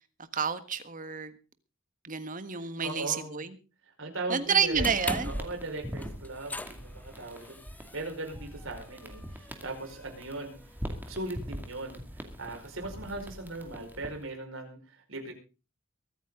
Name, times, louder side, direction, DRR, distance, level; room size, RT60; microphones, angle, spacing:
voice 1, 0.3-1.4 2.0-3.5 4.3-5.3, right 6 dB, 40° right, 11 dB, 1.6 m, -29 dB
voice 2, 2.8-3.4 4.0-4.9 5.2-7.6 7.9-10.6 11.1-15.3, right 2 dB, 70° right, 4 dB, 5.1 m, -39 dB
sound 1, 4.5-14.3, equal, 10° right, 2.3 m, -43 dB
sound 2, 4.7-11.0, left 1 dB, 10° left, 0.6 m, -41 dB
23.0 x 9.4 x 3.8 m, 0.33 s
head